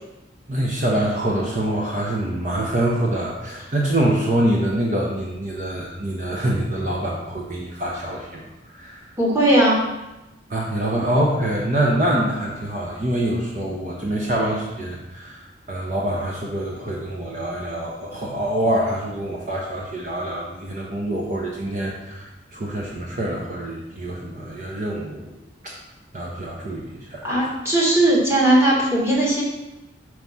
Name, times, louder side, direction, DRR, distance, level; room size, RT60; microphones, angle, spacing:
voice 1, 0.5-9.1 10.5-25.4 25.6-25.7 26.1-27.4, right 1 dB, 40° right, -3 dB, 0.8 m, -25 dB
voice 2, 9.2-9.8 27.2-29.4, right 1 dB, 15° right, -5 dB, 1.3 m, -18 dB
4.8 x 4.7 x 5.5 m, 0.98 s
head